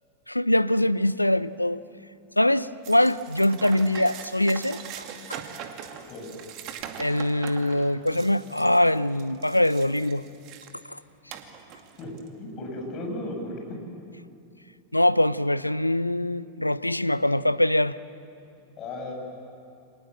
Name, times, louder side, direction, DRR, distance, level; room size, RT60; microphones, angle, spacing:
voice 1, 0.3-1.8 2.4-4.8 5.3-5.4 7.0-10.2 10.9-11.0 14.9-18.0, left 1 dB, 85° left, 17 dB, 0.6 m, -23 dB
sound 1, 2.8-10.8 11.3-12.3, right 8 dB, 40° right, 2.3 m, -41 dB
voice 2, 12.4-13.8 18.8-19.1, left 1 dB, 35° left, 2 dB, 7.4 m, -35 dB
29.0 x 25.5 x 7.6 m, 2.6 s
figure-of-eight pair, 90°, 0 cm